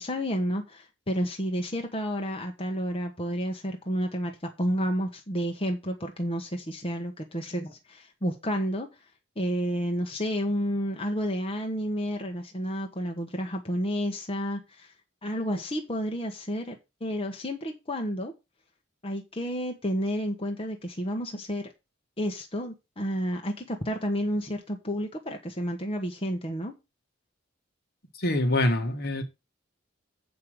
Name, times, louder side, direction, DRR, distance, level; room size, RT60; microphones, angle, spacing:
voice 1, 0.0-4.3 4.6-8.9 9.4-14.9 15.2-18.3 19.0-21.6 22.2-26.7, equal, 30° left, 1.3 m, -30 dB
voice 2, 28.2-29.2, left 1 dB, 55° left, 1.8 m, -25 dB
7.7 x 5.5 x 6.7 m
head